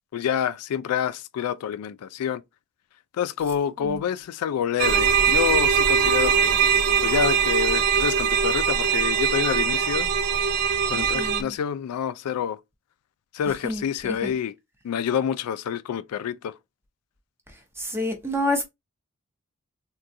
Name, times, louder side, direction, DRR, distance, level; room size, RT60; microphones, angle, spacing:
voice 1, 0.1-2.4 3.1-6.6 7.0-10.1 10.9-12.6 13.3-14.5 14.8-16.6, left 8 dB, 90° left, 0.3 m, -27 dB
sound 1, 4.8-11.4, right 7 dB, 85° right, 0.5 m, -21 dB
voice 2, 10.9-11.5 13.6-14.3 17.8-18.7, left 1 dB, 10° right, 0.7 m, -29 dB
3.6 x 2.3 x 2.6 m
head